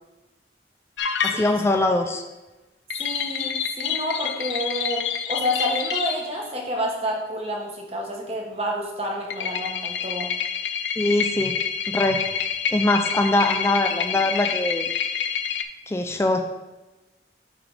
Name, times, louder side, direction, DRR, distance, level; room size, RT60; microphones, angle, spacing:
sound 1, 1.0-1.8 2.9-6.3 9.3-15.6, left 7 dB, 85° left, 0.5 m, -28 dB
voice 1, 1.2-2.2 11.0-11.6 11.9-12.2 12.7-14.9 15.9-16.4, left 2 dB, 15° left, 5 dB, 0.3 m, -22 dB
voice 2, 3.0-10.3, equal, 35° right, 0 dB, 1.1 m, -29 dB
7.5 x 3.3 x 4.7 m, 1.1 s
head